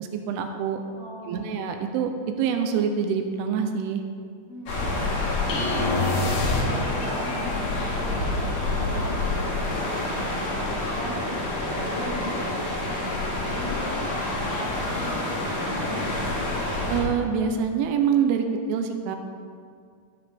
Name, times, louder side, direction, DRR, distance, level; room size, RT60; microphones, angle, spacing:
voice 1, 0.0-0.8 1.3-2.1 2.4-4.0 16.9-19.2, right 7 dB, 85° right, 5 dB, 3.1 m, -25 dB
voice 2, 0.9-1.6 4.5-5.2 5.6-15.1 15.6-16.1, left 1 dB, 25° left, -9 dB, 1.4 m, -37 dB
sound 1, 4.7-17.0, left 2 dB, 45° left, 2.6 m, -28 dB
sound 2, 5.5-7.2, left 2 dB, 70° left, 3.1 m, -27 dB
15.0 x 7.9 x 3.6 m, 2.1 s
omnidirectional pair, 5.6 m